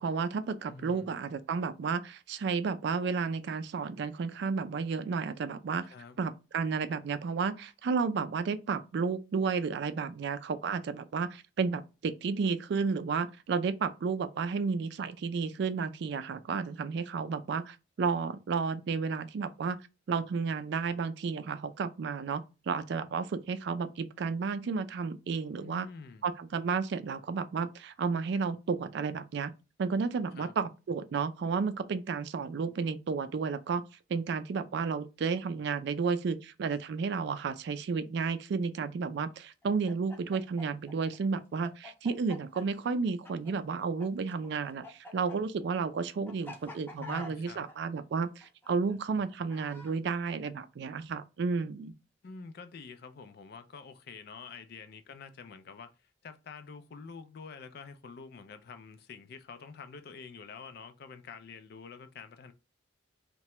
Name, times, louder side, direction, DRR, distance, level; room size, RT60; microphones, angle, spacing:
voice 1, 0.0-19.8 20.1-25.9 26.2-29.5 29.8-33.8 34.1-51.9, right 5 dB, 65° right, 0.3 m, -32 dB
voice 2, 0.7-1.1 5.8-6.2 25.6-26.3 30.4-30.5 47.0-47.6 52.2-62.5, left 5 dB, 55° left, 0.4 m, -47 dB
Chicken rooster, 39.6-44.1 44.3-49.9, left 1 dB, 10° left, 0.6 m, -47 dB
2.8 x 2.2 x 3.0 m
head